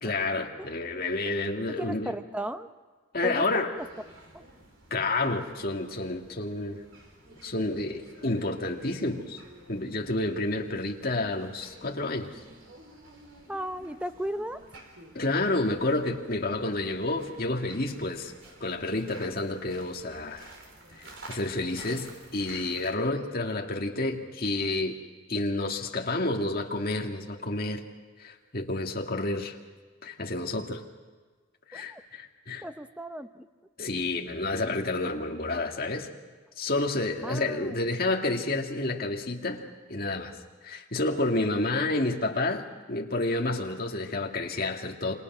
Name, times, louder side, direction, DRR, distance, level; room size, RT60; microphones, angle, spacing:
voice 1, 0.0-2.1 3.1-3.7 4.9-6.8 7.4-9.4 9.7-12.3 15.1-18.3 18.6-20.5 21.0-25.0 25.3-27.8 28.2-29.6 30.0-30.8 31.7-32.6 33.8-36.1 36.6-39.6 39.9-40.4 40.6-45.1, left 2 dB, 45° left, 2 dB, 2.2 m, -30 dB
voice 2, 1.7-2.7 3.2-3.9 4.3-4.4 13.5-14.6 31.7-32.0 32.6-33.5 37.2-37.8, right 1 dB, 5° right, 9 dB, 0.8 m, -35 dB
sound 1, 3.8-22.9, right 2 dB, 65° right, 4.4 m, -51 dB
28.0 x 26.0 x 6.2 m, 1.4 s
head